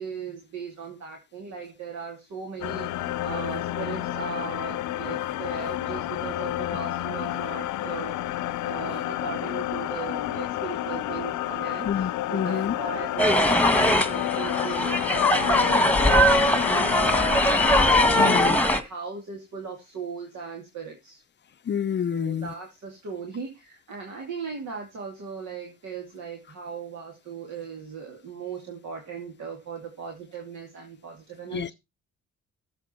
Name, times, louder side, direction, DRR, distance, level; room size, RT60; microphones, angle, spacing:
voice 1, 0.0-21.2 22.1-31.7, right 5 dB, 70° right, 2.6 m, -38 dB
sound 1, 2.6-18.5, left 14 dB, 75° left, 0.7 m, -30 dB
voice 2, 11.9-12.7 18.2-18.6 21.7-22.5 31.5-31.7, left 8 dB, 40° left, 0.6 m, -28 dB
sound 2, 13.2-18.8, left 1 dB, 5° left, 1.6 m, -21 dB
12.5 x 6.5 x 4.4 m
supercardioid pair, 60°, 30 cm